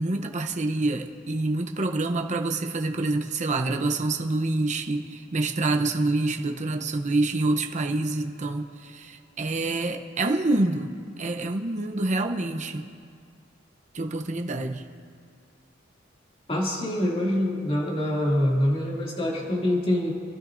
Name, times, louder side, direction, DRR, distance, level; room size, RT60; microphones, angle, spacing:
voice 1, 0.0-12.9 13.9-14.8, right 2 dB, 40° right, 3 dB, 0.8 m, -27 dB
voice 2, 16.5-20.1, left 1 dB, 30° left, -4 dB, 2.5 m, -25 dB
28.5 x 13.0 x 2.6 m, 2.1 s
head